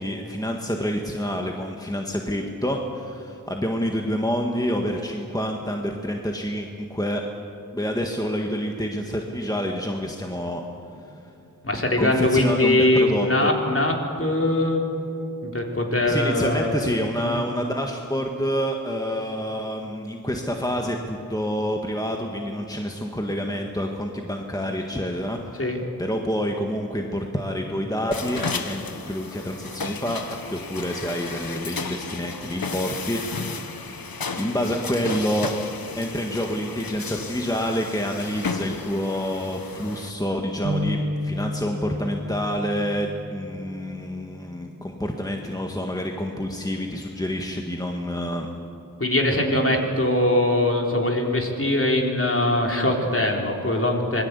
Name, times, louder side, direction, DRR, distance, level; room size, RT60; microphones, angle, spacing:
voice 1, 0.0-7.2 7.7-10.6 12.0-13.5 16.0-25.6 26.0-28.8 29.1-30.2 30.5-33.7 34.4-35.5 36.0-41.0 41.2-48.5, equal, 10° left, 2 dB, 1.8 m, -28 dB
voice 2, 11.6-14.9 15.4-16.7 17.2-17.4 25.6-25.8 49.0-54.2, left 1 dB, 40° left, 1 dB, 4.0 m, -22 dB
sound 1, 28.1-40.1, left 4 dB, 80° left, 1.4 m, -34 dB
sound 2, 40.6-44.2, left 1 dB, 40° right, 2.7 m, -31 dB
26.0 x 20.5 x 8.4 m, 2.8 s
wide cardioid pair, 75°, 35 cm